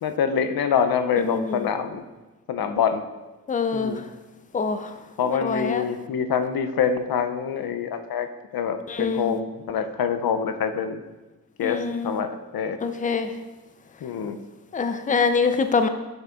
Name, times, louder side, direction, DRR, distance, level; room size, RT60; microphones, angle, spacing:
voice 1, 0.0-2.0 2.5-3.0 3.7-4.0 5.2-8.3 8.5-11.0 11.6-12.8 14.0-14.4, left 7 dB, 80° left, 9 dB, 0.5 m, -25 dB
voice 2, 1.2-1.6 3.5-4.0 4.5-4.9 5.4-5.8 8.9-9.3 11.6-12.1 12.8-13.3 14.7-15.9, left 5 dB, 25° left, 9 dB, 0.4 m, -24 dB
6.8 x 6.5 x 2.4 m, 1.1 s
cardioid pair, 50°, 36 cm